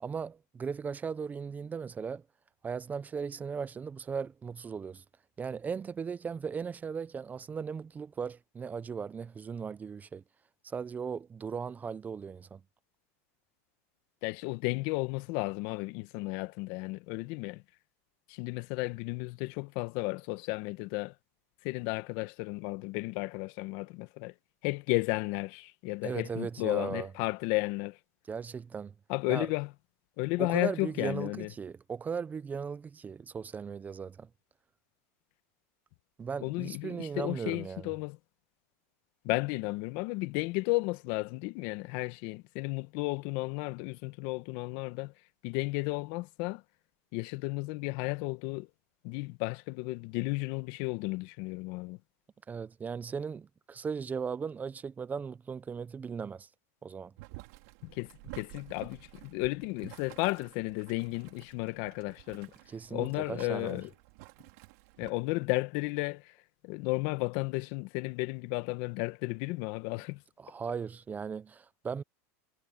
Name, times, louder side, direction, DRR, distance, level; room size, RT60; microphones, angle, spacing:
voice 1, 0.0-2.2 2.6-5.0 5.4-10.2 10.6-12.6 26.0-27.1 28.3-28.9 29.3-29.5 30.4-34.3 36.2-37.9 52.5-56.5 56.8-57.1 62.7-63.8 70.4-72.0, right 6 dB, 20° right, 0.7 m, -37 dB
voice 2, 14.2-17.6 18.3-21.1 21.6-24.3 24.6-28.0 29.1-29.7 30.2-31.5 36.4-38.2 39.2-45.1 45.4-46.6 47.1-48.7 49.0-52.0 57.8-62.5 62.9-63.9 65.0-66.3 66.6-70.2, left 23 dB, 60° left, 1.3 m, -33 dB
Boiling, 57.2-65.1, right 23 dB, 65° right, 2.8 m, -51 dB
supercardioid pair, 125°, 8 cm